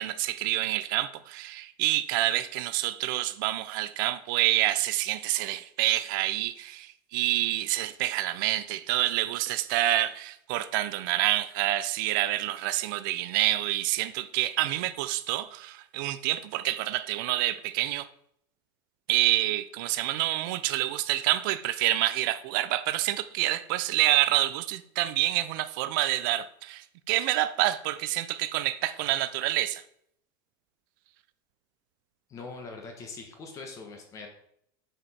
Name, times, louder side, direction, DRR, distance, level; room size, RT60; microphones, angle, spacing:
voice 1, 0.0-6.9 7.1-18.1 19.1-29.8, right 15 dB, 60° right, 0.5 m, -27 dB
voice 2, 32.3-34.3, left 4 dB, 25° left, 1.1 m, -42 dB
7.6 x 5.0 x 4.2 m
supercardioid pair, 165°, 12 cm